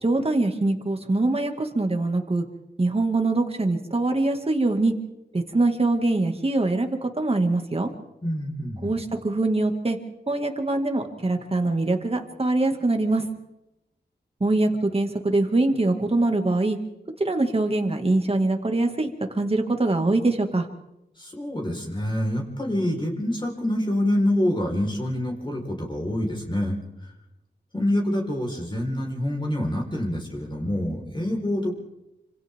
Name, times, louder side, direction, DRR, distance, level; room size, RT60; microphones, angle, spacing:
voice 1, 0.0-2.5 2.8-4.9 5.3-7.9 8.8-10.0 10.3-13.3 14.4-16.8 17.2-19.1 19.3-20.7, right 2 dB, 35° right, 4 dB, 2.2 m, -23 dB
voice 2, 8.2-8.9 21.2-26.8 27.7-31.8, left 1 dB, 25° left, -1 dB, 4.6 m, -26 dB
27.5 x 26.5 x 3.7 m, 0.90 s
wide cardioid pair, 105°, 18 cm